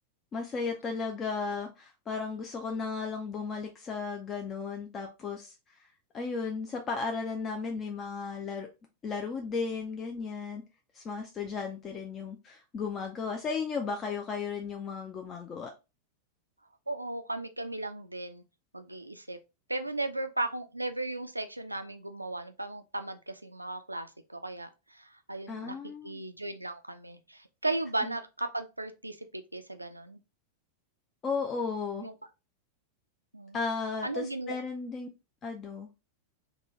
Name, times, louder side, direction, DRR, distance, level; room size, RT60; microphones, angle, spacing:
voice 1, 0.3-5.8 6.1-8.7 9.0-10.6 10.9-15.7 25.5-26.2 31.2-32.1 33.5-35.1 35.4-35.9, left 5 dB, 25° left, 0.5 m, -35 dB
voice 2, 16.9-18.4 18.7-19.4 19.7-25.7 26.0-30.2 32.0-32.1 33.3-33.6 34.0-34.5, right 2 dB, 85° right, 0.4 m, -36 dB
3.7 x 2.3 x 3.0 m
figure-of-eight pair, 90°, 0 cm